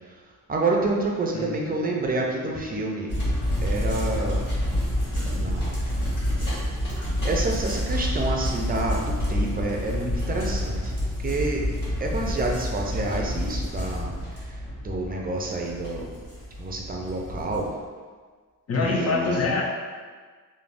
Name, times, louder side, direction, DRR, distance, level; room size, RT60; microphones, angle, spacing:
voice 1, 0.5-3.1 3.6-4.4 5.3-5.8 7.2-10.9 11.2-11.6 12.0-16.1 16.6-17.7 18.8-19.4, right 2 dB, 30° right, 0 dB, 0.4 m, -28 dB
voice 2, 1.3-1.8 18.7-19.6, left 3 dB, 45° left, -1 dB, 0.5 m, -25 dB
sound 1, 3.1-17.7, equal, 30° left, 1.2 m, -28 dB
3.3 x 2.1 x 2.4 m, 1.5 s
wide cardioid pair, 115°, 33 cm